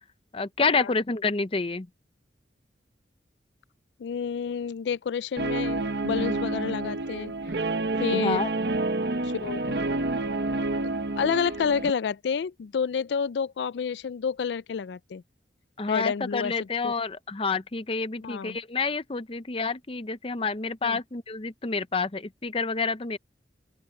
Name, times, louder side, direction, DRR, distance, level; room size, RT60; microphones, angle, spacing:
voice 1, 0.3-1.9 8.1-8.5 15.8-23.2, left 4 dB, 30° left, 0.7 m, -28 dB
voice 2, 4.0-7.3 8.0-8.4 9.2-9.7 11.2-15.2 15.9-16.9 18.2-18.6 20.8-21.0, left 6 dB, 75° left, 0.4 m, -29 dB
Guitar, 5.4-11.9, right 2 dB, 65° right, 0.9 m, -28 dB
open air
head